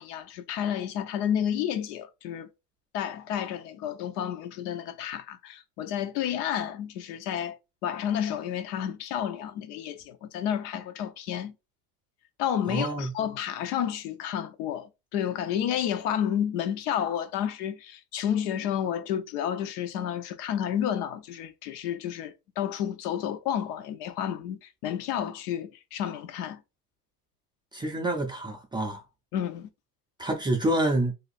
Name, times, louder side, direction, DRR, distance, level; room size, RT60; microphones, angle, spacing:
voice 1, 0.0-2.5 2.9-7.6 7.8-11.5 12.4-26.6 29.3-29.7, left 9 dB, 75° left, 0.8 m, -31 dB
voice 2, 12.7-13.1 27.7-29.0 30.2-31.1, right 1 dB, 10° right, 0.3 m, -27 dB
2.7 x 2.4 x 4.0 m
supercardioid pair, 115°, 47 cm